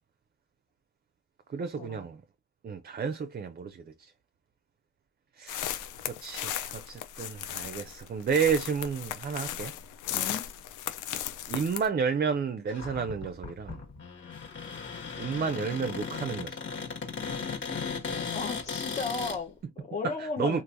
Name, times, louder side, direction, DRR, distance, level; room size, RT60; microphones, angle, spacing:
voice 1, 1.5-2.2 2.6-4.1 5.4-9.7 11.5-13.8 15.2-16.6 20.0-20.6, right 6 dB, 30° right, 0.5 m, -31 dB
sound 1, 5.5-11.9, left 11 dB, 85° left, 0.6 m, -36 dB
voice 2, 10.1-10.4 18.3-20.6, left 4 dB, 25° left, 0.7 m, -35 dB
Cupboard open or close, 12.7-19.4, left 5 dB, 40° left, 1.4 m, -36 dB
3.2 x 2.5 x 2.6 m
cardioid pair, 90°, 30 cm